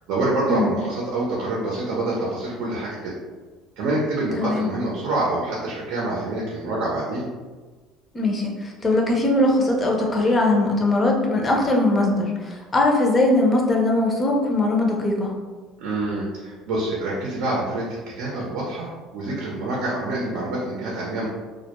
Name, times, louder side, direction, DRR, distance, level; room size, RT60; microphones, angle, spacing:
voice 1, 0.1-3.2 3.8-7.3 15.8-17.9 18.2-21.3, right 2 dB, 75° right, -4 dB, 0.6 m, -26 dB
voice 2, 4.3-4.7 8.1-15.3, left 2 dB, 20° left, 0 dB, 0.5 m, -20 dB
2.2 x 2.1 x 2.9 m, 1.4 s
cardioid pair, 115°, 0 cm